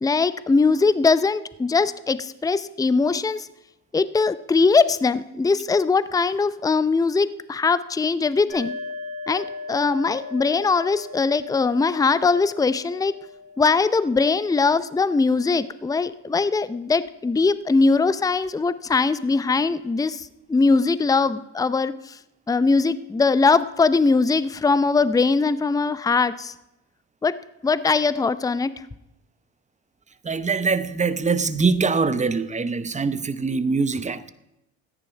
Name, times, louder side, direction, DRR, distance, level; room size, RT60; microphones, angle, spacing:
voice 1, 0.0-3.5 3.9-8.7 9.3-13.2 13.6-22.2 22.5-26.5 27.2-27.3 27.6-28.7, left 4 dB, 10° left, 0.6 m, -21 dB
sound 1, 8.5-16.0, left 3 dB, 75° left, 5.8 m, -39 dB
voice 2, 30.2-34.3, right 4 dB, 20° right, 0.9 m, -23 dB
14.0 x 9.9 x 5.8 m
hypercardioid pair, 65°, 40 cm